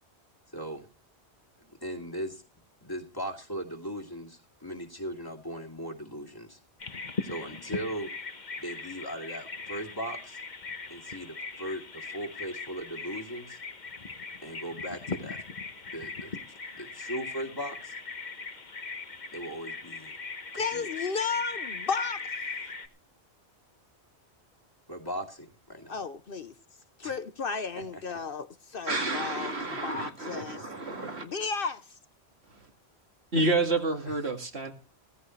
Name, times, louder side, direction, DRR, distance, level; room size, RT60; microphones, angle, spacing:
voice 1, 0.5-0.9 1.6-2.4 2.8-6.6 7.2-8.1 8.6-10.4 10.9-13.6 14.4-15.4 15.9-16.4 16.7-17.9 19.3-20.1 20.7-20.9 24.9-26.0 27.0-27.1 27.7-28.0 30.3-30.6 33.4-33.5 34.1-34.2, right 1 dB, 20° left, 2.4 m, -38 dB
Bird vocalization bird call bird song, 6.8-22.9, left 4 dB, 45° left, 1.3 m, -39 dB
voice 2, 20.6-22.2 25.9-26.5 27.0-30.6 31.2-32.0, left 5 dB, 60° left, 1.0 m, -33 dB
voice 3, 28.9-31.2 33.3-34.7, right 2 dB, 70° right, 2.4 m, -29 dB
17.0 x 15.0 x 3.2 m
omnidirectional pair, 1.1 m